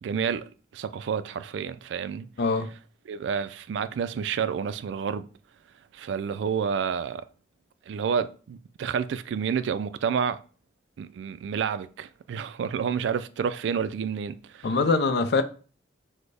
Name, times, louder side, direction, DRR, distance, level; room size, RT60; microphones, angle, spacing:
voice 1, 0.0-2.3 3.1-5.3 5.9-7.2 7.9-10.4 11.0-14.7, right 7 dB, 80° right, 0.3 m, -29 dB
voice 2, 2.4-2.7 14.6-15.4, left 3 dB, 60° left, 0.4 m, -23 dB
6.1 x 2.1 x 3.3 m
head